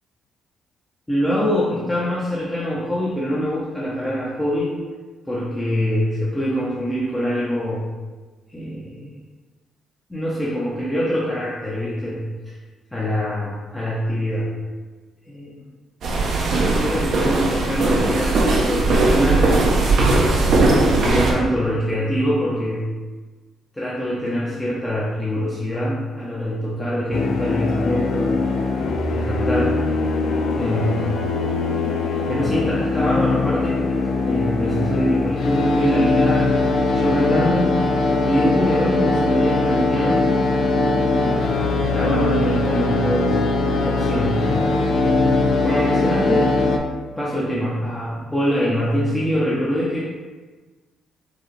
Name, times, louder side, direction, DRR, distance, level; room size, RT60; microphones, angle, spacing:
voice 1, 1.1-4.7 5.3-7.9 8.5-9.1 10.1-12.6 12.9-14.6 15.3-15.6 16.6-19.5 20.6-23.0 23.7-28.3 29.1-29.8 30.6-31.1 32.2-33.8 34.2-37.8 38.3-40.3 41.1-43.4 43.8-44.5 45.6-46.5 47.2-50.1, equal, 10° left, -8 dB, 0.8 m, -24 dB
sound 1, 16.0-21.3, right 2 dB, 65° right, 0.7 m, -18 dB
sound 2, 27.1-46.8, left 3 dB, 70° left, 0.4 m, -21 dB
4.7 x 2.4 x 3.2 m, 1.3 s
cardioid pair, 90°, 0 cm